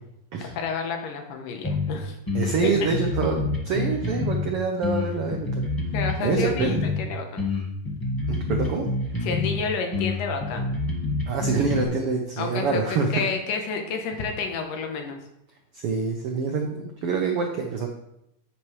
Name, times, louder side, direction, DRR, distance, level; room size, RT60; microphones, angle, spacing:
voice 1, 0.4-2.2 5.9-7.4 9.2-10.7 12.4-15.2, left 5 dB, 75° left, 4 dB, 2.7 m, -30 dB
sound 1, 1.6-1.9 2.3-4.5 4.8-7.0 7.4-9.6 9.9-11.8, left 2 dB, 25° left, 0.4 m, -27 dB
voice 2, 2.3-5.6 6.2-6.9 8.3-8.8 11.3-13.2 15.7-17.9, right 4 dB, 85° right, 2 dB, 1.2 m, -26 dB
9.3 x 8.5 x 3.3 m, 0.82 s
omnidirectional pair, 3.9 m